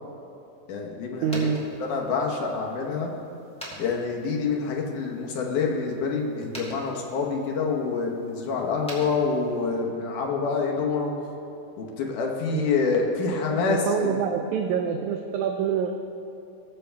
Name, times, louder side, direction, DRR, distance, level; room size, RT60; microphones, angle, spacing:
voice 1, 0.7-1.5 1.8-3.1 3.8-11.1 11.8-14.1, left 4 dB, 75° left, 0 dB, 2.6 m, -27 dB
sound 1, 1.1-9.9, equal, 5° left, 1.3 m, -46 dB
voice 2, 1.2-1.6 12.5-12.6 13.7-15.9, right 7 dB, 80° right, 5 dB, 1.8 m, -26 dB
20.5 x 6.9 x 3.4 m, 2.8 s
omnidirectional pair, 3.7 m